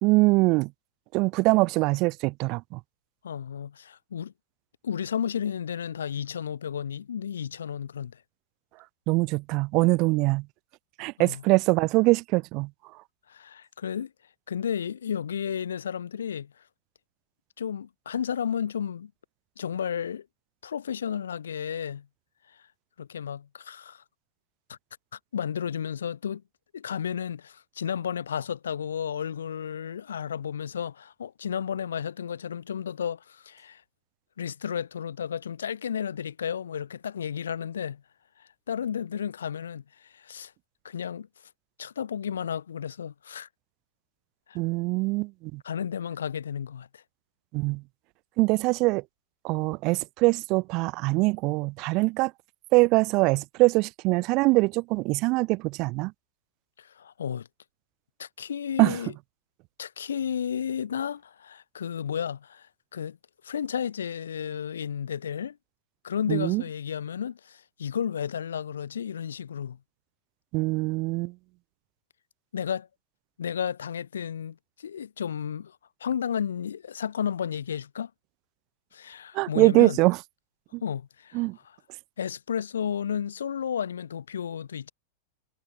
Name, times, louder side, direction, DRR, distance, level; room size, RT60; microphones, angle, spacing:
voice 1, 0.0-0.7 1.1-2.8 9.1-10.5 11.0-12.7 44.5-45.6 47.5-47.8 48.4-49.0 49.4-52.3 52.7-56.1 58.8-59.0 66.3-66.6 70.5-71.3 79.3-80.2 80.7-80.8 81.3-81.6, right 24 dB, 45° right, 0.5 m, -23 dB
voice 2, 3.2-4.3 4.8-8.2 11.2-11.4 13.3-14.1 14.5-16.5 17.6-19.1 19.6-20.3 20.6-22.1 23.0-24.0 24.7-24.8 25.3-26.4 26.7-33.8 34.4-38.0 38.7-40.5 40.8-41.3 41.8-43.5 44.5-44.6 45.6-47.0 56.8-57.5 58.2-59.1 59.8-62.7 62.9-63.2 63.4-65.6 66.0-69.8 72.5-72.9 73.4-78.1 78.9-80.0 80.8-81.8 82.2-84.9, left 8 dB, 70° left, 3.6 m, -32 dB
figure-of-eight pair, 90°, 0 cm